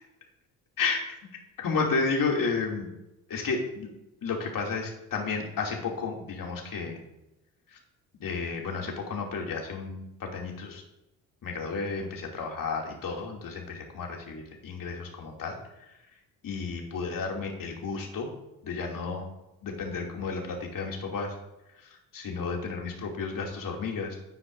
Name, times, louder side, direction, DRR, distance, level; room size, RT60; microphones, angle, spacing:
voice 1, 1.6-2.9 3.3-3.9 4.2-7.0 7.7-7.8 8.2-10.8 11.4-15.9 16.4-18.3 18.6-19.2 19.6-21.3 21.8-24.2, left 4 dB, 50° left, 0 dB, 2.7 m, -32 dB
11.5 x 9.3 x 2.6 m, 0.94 s
hypercardioid pair, 55°, 44 cm